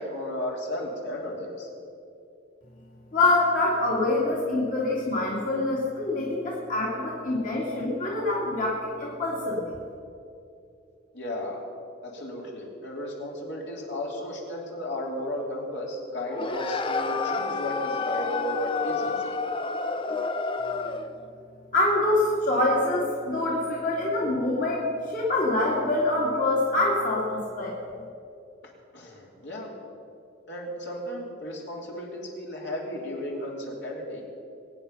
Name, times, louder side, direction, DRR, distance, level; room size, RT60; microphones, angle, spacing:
voice 1, 0.0-1.7 11.1-11.6 12.0-19.4 28.9-29.7 30.5-34.2, left 1 dB, 65° left, -2 dB, 3.1 m, -34 dB
voice 2, 3.1-9.8 21.7-27.8, left 2 dB, 45° left, -4 dB, 2.5 m, -25 dB
sound 1, 16.3-21.2, left 4 dB, 25° left, 0.6 m, -29 dB
22.5 x 9.1 x 5.6 m, 2.6 s
head